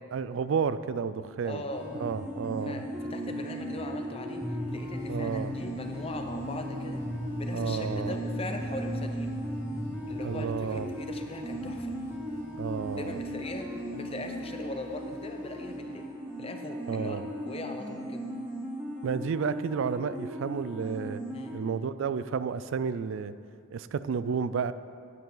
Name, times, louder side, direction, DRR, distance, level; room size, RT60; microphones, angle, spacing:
voice 1, 0.1-1.6 1.9-2.8 5.1-5.5 7.5-8.2 10.2-10.9 12.6-13.2 16.9-17.2 19.0-21.2 21.5-23.3 23.7-24.7, right 6 dB, 70° right, 14 dB, 0.3 m, -31 dB
voice 2, 1.4-1.9 2.6-2.8 3.1-7.0 7.4-9.4 10.1-11.9 13.0-16.1 16.4-17.2 17.5-18.3 21.3-21.6, left 2 dB, 30° left, 5 dB, 0.6 m, -40 dB
sound 1, 1.7-21.6, equal, 5° right, 0.9 m, -36 dB
sound 2, 4.7-16.4, right 1 dB, 50° left, 2.4 m, -54 dB
10.5 x 9.4 x 3.9 m, 2.3 s
head